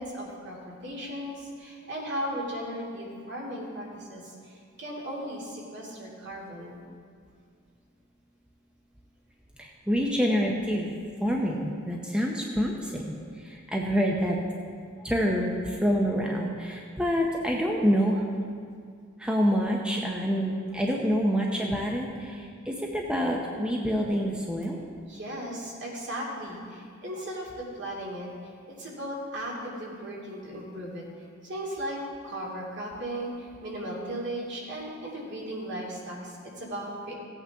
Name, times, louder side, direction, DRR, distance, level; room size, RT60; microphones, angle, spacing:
voice 1, 0.0-6.8 25.1-28.3 28.7-31.1 31.4-37.2, equal, 55° right, -4 dB, 2.5 m, -36 dB
voice 2, 9.6-10.9 11.2-14.4 15.0-18.3 19.2-24.8, equal, 5° right, -1 dB, 0.7 m, -27 dB
16.5 x 8.5 x 3.5 m, 2.1 s
head